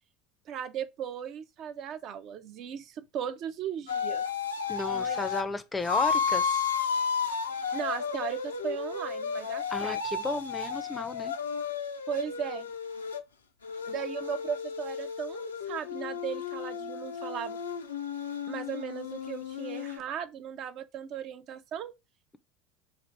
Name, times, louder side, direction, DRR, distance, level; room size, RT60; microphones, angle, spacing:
voice 1, 0.5-4.2 4.9-5.3 7.7-10.0 12.1-12.7 13.8-17.6 18.5-21.9, right 8 dB, 50° right, 0.4 m, -37 dB
sound 1, 3.9-5.4 5.8-13.2 13.6-20.0, left 6 dB, 85° left, 0.4 m, -33 dB
voice 2, 4.7-6.6 9.7-11.3, left 3 dB, 15° left, 0.4 m, -33 dB
3.4 x 2.5 x 4.0 m
figure-of-eight pair, 70°, 0 cm